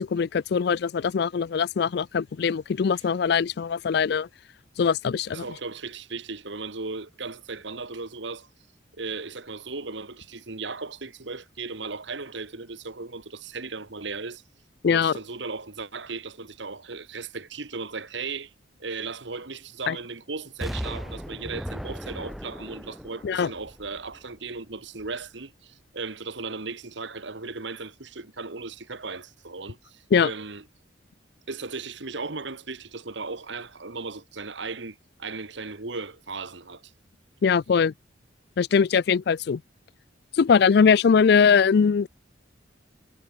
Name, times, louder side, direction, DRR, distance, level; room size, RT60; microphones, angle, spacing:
voice 1, 0.0-4.3 4.8-5.4 14.8-15.2 19.9-20.0 23.2-23.5 30.1-30.3 37.4-37.9 38.6-39.6 40.3-42.1, left 6 dB, 55° left, 0.3 m, -21 dB
voice 2, 5.3-8.5 9.0-14.4 14.8-18.5 18.8-30.6 31.5-36.9, right 4 dB, 65° right, 1.7 m, -36 dB
Explosion, 20.6-24.5 25.0-25.1, equal, ahead, 0.6 m, -37 dB
head